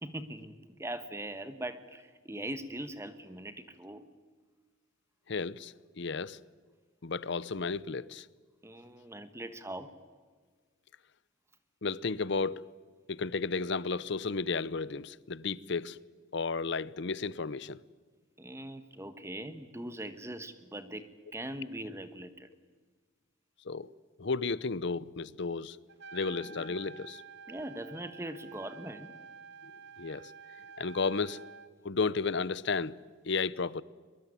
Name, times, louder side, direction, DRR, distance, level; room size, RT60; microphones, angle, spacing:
voice 1, 0.0-4.0 8.6-9.9 18.4-22.5 27.5-29.1, right 1 dB, 15° right, 1.2 m, -41 dB
voice 2, 5.3-6.4 7.0-8.3 11.8-12.7 13.1-16.0 16.3-17.8 23.7-23.9 24.2-25.8 26.1-27.2 30.0-30.3 30.8-31.4 31.8-32.9 33.2-33.8, left 4 dB, 60° left, 0.8 m, -33 dB
Trumpet, 25.9-31.7, right 6 dB, 60° right, 1.2 m, -50 dB
23.0 x 22.5 x 9.3 m
head